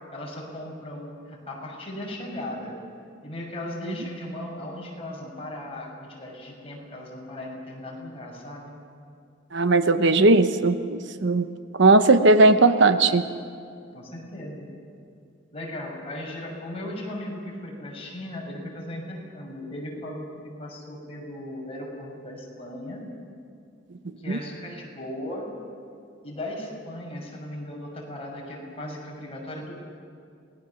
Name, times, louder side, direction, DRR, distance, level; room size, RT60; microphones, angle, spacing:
voice 1, 0.1-2.8 3.2-8.7 13.9-14.7 15.5-23.1 24.2-25.5 26.2-29.7, left 1 dB, 30° left, -2 dB, 5.9 m, -37 dB
voice 2, 9.5-11.5 11.8-13.2 24.3-24.4, right 2 dB, 65° right, 10 dB, 1.0 m, -18 dB
27.5 x 19.5 x 7.1 m, 2.4 s
head